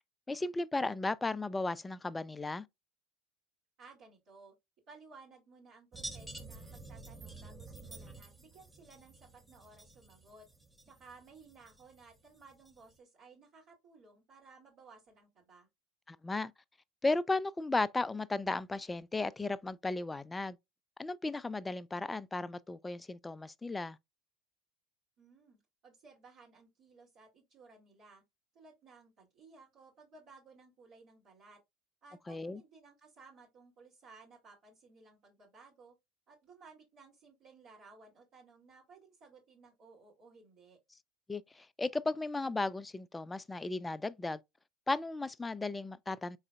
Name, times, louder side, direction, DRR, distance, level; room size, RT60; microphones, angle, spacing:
voice 1, 0.3-2.7 16.1-16.5 17.0-20.6 21.0-24.0 32.3-32.6 41.3-44.4 44.9-46.4, left 2 dB, 15° left, 0.3 m, -35 dB
voice 2, 3.8-4.5 4.9-10.5 10.8-15.7 25.2-28.2 28.5-31.6 32.0-35.9 36.3-40.8, right 4 dB, 60° right, 2.3 m, -58 dB
sound 1, 5.9-13.0, right 2 dB, 10° right, 0.8 m, -50 dB
4.0 x 3.7 x 2.3 m
hypercardioid pair, 75°, 0 cm